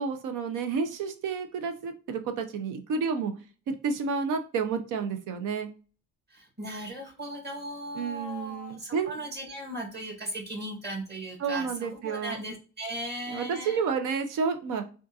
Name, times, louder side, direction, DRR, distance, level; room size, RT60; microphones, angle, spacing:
voice 1, 0.0-3.3 3.7-5.7 7.9-9.1 11.4-12.4 13.3-14.8, right 5 dB, 90° right, 7 dB, 0.7 m, -30 dB
voice 2, 6.3-13.8, right 1 dB, 35° right, 1 dB, 1.5 m, -37 dB
3.6 x 2.5 x 2.7 m, 0.37 s
cardioid pair, 90°, 30 cm